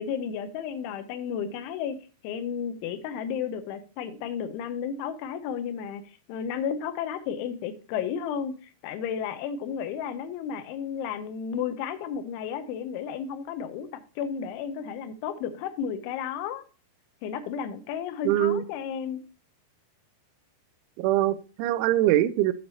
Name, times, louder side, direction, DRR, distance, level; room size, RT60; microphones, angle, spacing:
voice 1, 0.0-2.0 2.2-6.0 6.3-8.5 8.8-16.6 17.2-19.2, left 7 dB, 85° left, 10 dB, 3.3 m, -33 dB
voice 2, 18.3-18.6 21.0-22.5, right 13 dB, 90° right, 14 dB, 3.0 m, -23 dB
8.6 x 7.7 x 2.8 m, 0.34 s
omnidirectional pair, 5.3 m